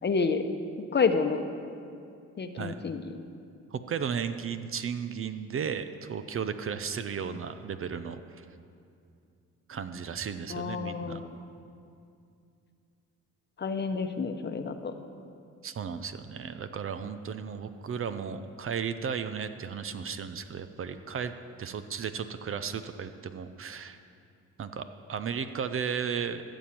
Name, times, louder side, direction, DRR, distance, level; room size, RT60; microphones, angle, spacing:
voice 1, 0.0-0.5 0.9-1.5 2.4-3.2 10.5-11.3 13.6-14.9, left 5 dB, 35° left, 7 dB, 0.9 m, -29 dB
voice 2, 3.7-8.4 9.7-11.2 15.6-21.3 21.6-24.0 24.6-26.4, right 7 dB, 45° right, 10 dB, 0.7 m, -34 dB
14.0 x 7.1 x 7.5 m, 2.5 s
cardioid pair, 90°, 30 cm